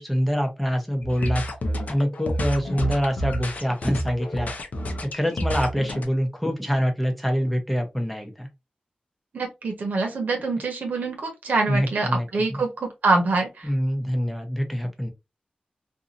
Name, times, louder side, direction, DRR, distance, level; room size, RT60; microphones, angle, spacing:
voice 1, 0.0-1.4 1.9-4.5 5.0-8.5 11.7-12.6 13.6-15.1, equal, 5° left, 0.7 m, -25 dB
sound 1, 1.0-6.0, equal, 65° left, 0.6 m, -29 dB
voice 2, 9.3-13.5, right 3 dB, 90° right, 1.0 m, -25 dB
2.7 x 2.5 x 2.5 m
wide cardioid pair, 115°, 3 cm